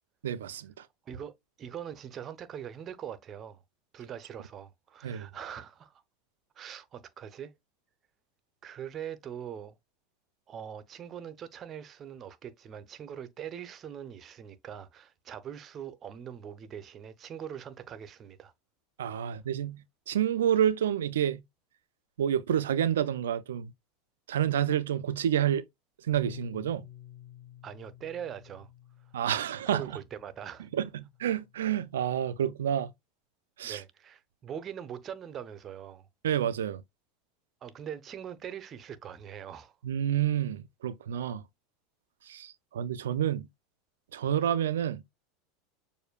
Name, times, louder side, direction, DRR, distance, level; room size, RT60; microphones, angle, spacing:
voice 1, 0.2-0.7 5.0-5.3 19.0-19.8 20.1-21.4 22.2-23.7 24.3-25.6 26.1-26.8 29.1-29.8 30.7-30.9 31.2-32.9 33.6-33.8 36.2-36.8 39.8-41.4 42.3-43.5 44.1-45.0, right 10 dB, 85° right, 0.4 m, -28 dB
voice 2, 1.6-3.6 3.9-6.0 6.5-7.5 8.6-9.8 10.5-18.5 27.6-28.7 29.1-29.2 29.7-30.7 33.6-36.1 37.6-39.8, right 9 dB, 40° right, 0.8 m, -42 dB
Bass guitar, 26.1-32.4, left 12 dB, 15° left, 1.3 m, -51 dB
6.6 x 2.6 x 2.3 m
hypercardioid pair, 95°, 0 cm